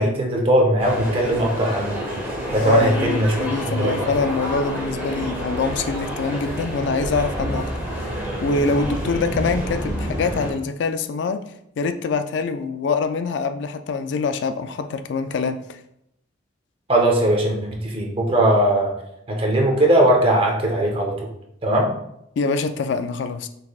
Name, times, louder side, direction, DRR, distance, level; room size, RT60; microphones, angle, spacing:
voice 1, 0.0-1.9 2.5-3.4 3.8-4.1 16.9-18.9 19.3-21.3 21.6-21.9, right 1 dB, 30° right, 0 dB, 0.8 m, -19 dB
sound 1, 0.8-10.5, equal, 10° right, 1.4 m, -28 dB
voice 2, 2.6-7.7 8.0-11.5 11.8-15.8 22.4-23.5, left 4 dB, 65° left, 9 dB, 0.3 m, -24 dB
5.8 x 3.3 x 2.3 m, 0.77 s
head